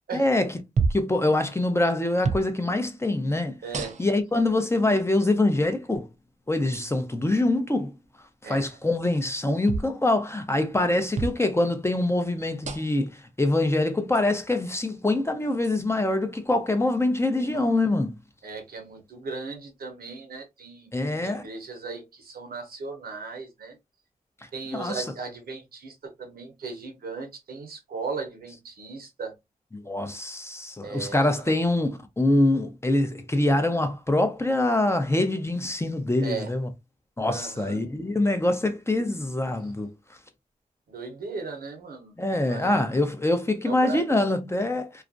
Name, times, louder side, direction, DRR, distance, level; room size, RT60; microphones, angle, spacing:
voice 1, 0.1-0.6 0.9-6.1 6.5-7.9 8.5-18.1 20.9-21.4 24.7-25.1 29.9-36.7 37.2-39.9 42.2-45.0, left 2 dB, 15° left, 0.6 m, -24 dB
sound 1, 0.8-1.1 2.2-2.5 3.7-4.2 5.2-5.3 6.7-6.9 9.7-9.9 11.2-11.4 12.6-13.0 14.2-14.3 15.6-15.8, right 4 dB, 50° right, 0.5 m, -29 dB
voice 2, 3.6-4.0 8.4-8.7 17.3-17.7 18.4-20.9 21.2-23.8 24.5-29.3 30.8-31.5 36.2-36.5 37.3-37.8 39.6-39.7 40.9-42.2 42.5-42.9 43.7-44.4, right 4 dB, 75° right, 0.8 m, -37 dB
2.4 x 2.1 x 2.5 m
cardioid pair, 55°, 16 cm